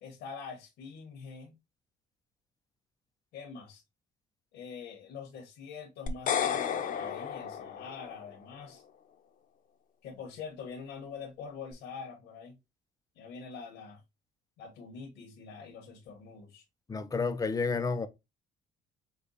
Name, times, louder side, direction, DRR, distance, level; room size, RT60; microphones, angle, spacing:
voice 1, 0.0-1.5 3.3-3.8 4.5-8.8 10.0-12.6 13.1-14.0 14.6-16.6, left 5 dB, 85° left, 1.2 m, -45 dB
sound 1, 6.1-8.4, left 8 dB, 55° left, 0.8 m, -33 dB
voice 2, 16.9-18.1, left 4 dB, 20° left, 0.6 m, -30 dB
5.2 x 2.3 x 4.0 m
cardioid pair, 110°, 17 cm